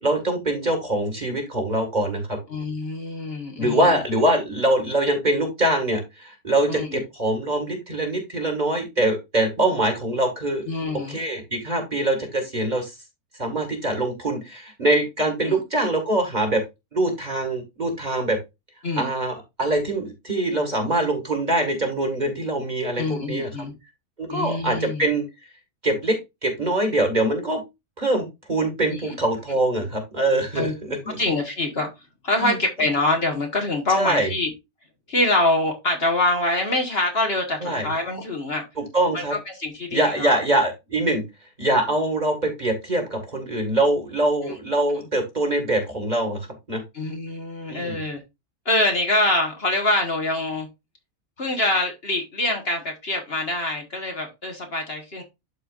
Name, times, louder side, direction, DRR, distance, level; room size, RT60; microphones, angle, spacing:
voice 1, 0.0-2.4 3.6-10.6 11.1-12.9 13.4-16.6 16.9-18.4 19.0-23.5 24.2-25.2 25.8-27.6 28.0-31.2 32.4-32.6 34.0-34.3 37.6-37.9 38.8-39.3 39.9-41.2 41.6-46.4 46.7-46.8 47.7-48.0, right 1 dB, 30° right, 2.1 m, -23 dB
voice 2, 2.5-4.0 6.7-7.0 10.7-11.2 15.5-15.6 18.8-19.1 23.0-23.7 24.3-25.1 28.9-29.2 30.5-30.7 31.2-31.9 32.2-34.5 35.1-38.6 39.1-39.2 39.6-40.4 44.5-44.6 46.9-48.2 48.6-50.7 51.4-55.2, left 2 dB, 40° left, 1.7 m, -25 dB
12.0 x 4.4 x 2.5 m
omnidirectional pair, 1.6 m